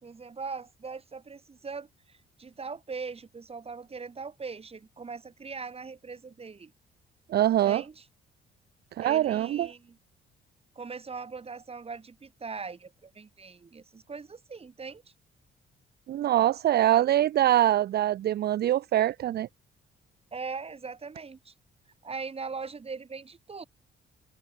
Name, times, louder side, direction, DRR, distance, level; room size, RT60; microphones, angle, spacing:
voice 1, 0.0-6.7 7.6-8.0 9.0-10.0 10.8-15.0 20.3-21.5 22.0-23.6, right 4 dB, 30° right, 2.1 m, -40 dB
voice 2, 7.3-7.8 9.0-9.7 16.1-19.5, right 12 dB, 55° right, 0.5 m, -24 dB
cardioid pair, 90°, 20 cm